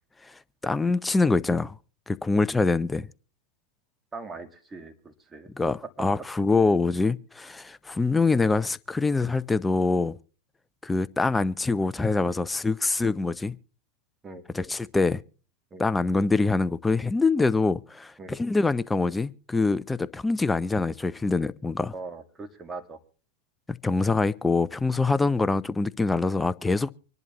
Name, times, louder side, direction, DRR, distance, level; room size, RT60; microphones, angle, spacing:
voice 1, 0.6-1.8 2.1-3.1 5.6-10.2 10.8-13.6 14.5-15.2 15.8-21.9 23.7-26.9, left 3 dB, 10° left, 0.5 m, -24 dB
voice 2, 4.1-6.3 14.2-14.7 15.7-15.9 18.2-18.4 21.9-23.0, right 3 dB, 20° right, 2.0 m, -41 dB
25.5 x 11.0 x 3.0 m
hypercardioid pair, 95°, 0 cm